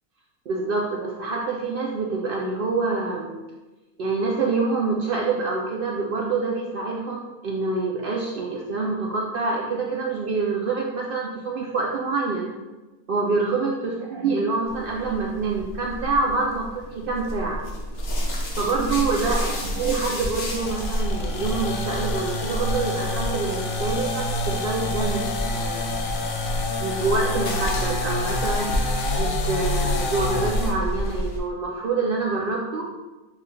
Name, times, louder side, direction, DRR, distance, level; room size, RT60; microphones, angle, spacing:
voice 1, 0.5-3.4 4.0-12.5 13.1-17.6 18.6-25.9 26.8-28.7 29.2-32.9, right 3 dB, 90° right, -2 dB, 0.4 m, -26 dB
sound 1, 14.7-31.4, equal, 55° left, 0.8 m, -30 dB
sound 2, 20.5-30.8, left 2 dB, 85° left, 0.4 m, -28 dB
5.9 x 2.2 x 3.2 m, 1.1 s
omnidirectional pair, 1.5 m